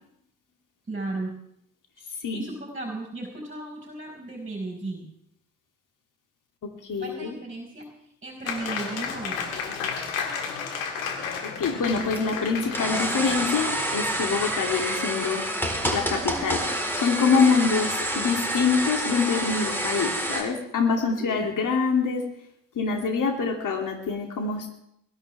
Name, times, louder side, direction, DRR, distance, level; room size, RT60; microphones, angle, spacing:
voice 1, 0.9-1.3 2.0-5.1 7.0-9.5 21.1-21.5, right 2 dB, 20° right, -1 dB, 5.4 m, -35 dB
voice 2, 6.8-7.3 11.6-15.4 15.9-16.6 16.9-22.2 22.7-24.7, left 5 dB, 50° left, 3 dB, 2.8 m, -25 dB
Applause, 8.4-14.8, left 6 dB, 85° left, 1.9 m, -33 dB
sound 1, 11.6-20.4, right 1 dB, 5° left, 4.0 m, -28 dB
22.0 x 13.0 x 3.5 m, 0.75 s
hypercardioid pair, 45°, 40 cm